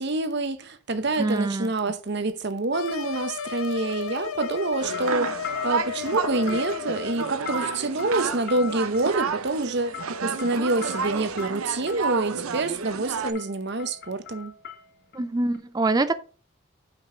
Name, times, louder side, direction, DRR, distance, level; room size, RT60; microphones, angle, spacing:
voice 1, 0.0-14.5, right 2 dB, 50° right, 0.8 m, -27 dB
sound 1, 0.9-1.2 2.9-4.2 4.4-12.1 12.9-13.1 13.3-15.2 15.5-15.6, left 8 dB, 50° left, 1.2 m, -41 dB
voice 2, 1.2-1.7 15.1-16.2, right 2 dB, 20° right, 0.3 m, -24 dB
sound 2, 2.7-7.2, left 6 dB, 90° left, 0.7 m, -34 dB
sound 3, 4.8-13.3, right 5 dB, 85° right, 0.7 m, -31 dB
5.7 x 5.3 x 5.0 m
head